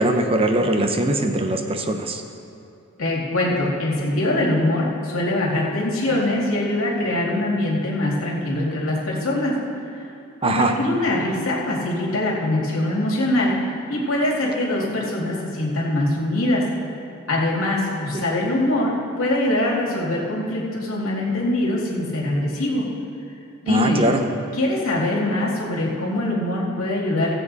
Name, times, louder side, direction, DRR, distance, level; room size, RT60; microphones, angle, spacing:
voice 1, 0.0-2.2 10.4-10.7 18.1-18.2 23.7-24.2, right 1 dB, 25° right, 5 dB, 0.8 m, -21 dB
voice 2, 3.0-9.6 10.4-13.5 13.9-16.6 17.3-22.9 23.6-24.0 24.6-27.3, left 1 dB, 80° left, -3 dB, 2.4 m, -23 dB
16.5 x 7.6 x 4.1 m, 2.7 s
head